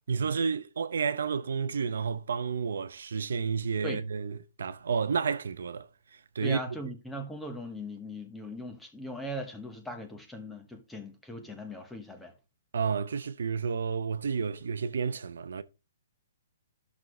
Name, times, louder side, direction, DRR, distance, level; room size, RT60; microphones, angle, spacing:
voice 1, 0.1-6.8 12.7-15.6, right 6 dB, 75° right, 0.7 m, -31 dB
voice 2, 6.4-12.3, equal, 5° left, 1.0 m, -39 dB
11.5 x 6.2 x 3.1 m
hypercardioid pair, 170°, 0 cm